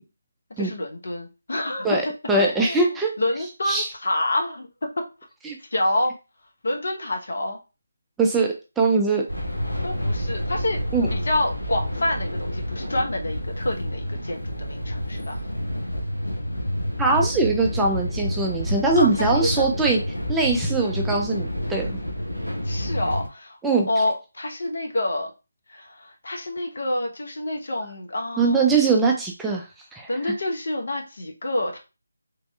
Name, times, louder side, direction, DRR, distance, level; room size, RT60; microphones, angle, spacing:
voice 1, 0.6-2.0 2.4-4.7 5.0-5.1 5.7-6.1 6.6-7.6 9.8-10.8 11.1-15.3 19.0-20.1 22.6-23.6 23.9-25.3 25.7-28.7 30.1-31.8, left 1 dB, 60° left, 2 dB, 0.9 m, -28 dB
voice 2, 2.3-3.1 3.6-3.9 5.4-5.6 8.2-9.2 10.9-11.1 17.0-20.0 20.3-21.9 23.6-23.9 28.4-30.3, right 3 dB, 5° right, -1 dB, 0.4 m, -22 dB
sound 1, 9.3-23.3, equal, 90° left, 0.8 m, -29 dB
3.2 x 2.6 x 2.3 m, 0.29 s
figure-of-eight pair, 155°, 0 cm